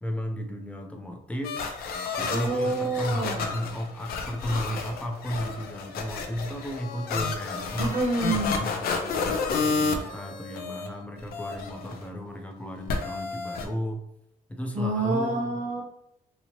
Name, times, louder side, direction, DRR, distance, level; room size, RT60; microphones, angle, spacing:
voice 1, 0.0-1.6 2.2-8.0 8.6-14.0 14.5-15.6, equal, 10° left, 3 dB, 0.4 m, -34 dB
sound 1, 1.4-10.9 11.2-12.0 12.9-13.6, left 4 dB, 85° left, 0.5 m, -31 dB
voice 2, 2.3-3.4 7.8-8.6 14.7-15.8, right 2 dB, 50° right, 2 dB, 0.7 m, -27 dB
2.9 x 2.7 x 2.9 m, 0.77 s
cardioid pair, 165°, 15 cm